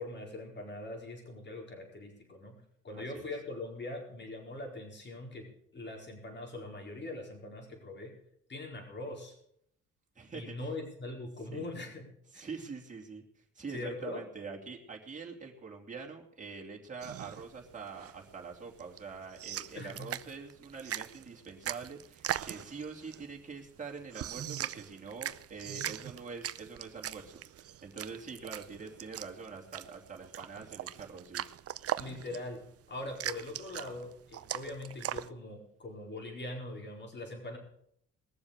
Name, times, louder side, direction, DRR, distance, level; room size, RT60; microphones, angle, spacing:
voice 1, 0.0-2.6 2.8-5.5 5.7-8.1 8.5-9.4 10.3-12.1 12.3-12.5 13.7-14.2 19.7-20.1 32.0-32.6 32.9-37.6, left 2 dB, 35° left, 1 dB, 4.7 m, -42 dB
voice 2, 2.9-3.3 10.1-10.7 11.5-11.7 12.3-13.2 13.5-31.4, right 5 dB, 25° right, -1 dB, 2.9 m, -45 dB
sound 1, 17.0-35.3, right 11 dB, 50° right, 0.6 m, -41 dB
20.5 x 7.1 x 6.7 m, 0.68 s
cardioid pair, 90°, 30 cm